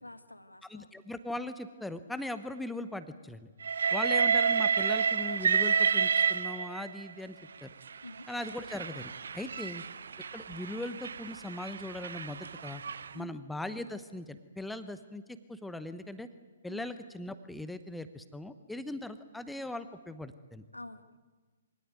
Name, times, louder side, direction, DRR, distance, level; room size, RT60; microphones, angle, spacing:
voice 1, 0.0-0.9 8.0-8.3 9.4-9.5 13.1-13.3 16.7-16.9 20.7-21.2, left 1 dB, 85° left, 11 dB, 1.6 m, -47 dB
voice 2, 0.7-3.5 3.9-7.4 7.6-7.7 8.3-9.8 10.3-12.8 13.1-16.3 16.6-20.6, left 1 dB, 5° left, 12 dB, 0.9 m, -39 dB
Train, 3.6-7.0 7.9-13.1, right 6 dB, 60° right, 0.7 m, -30 dB
23.5 x 17.5 x 9.4 m, 1.3 s
figure-of-eight pair, 125°, 0 cm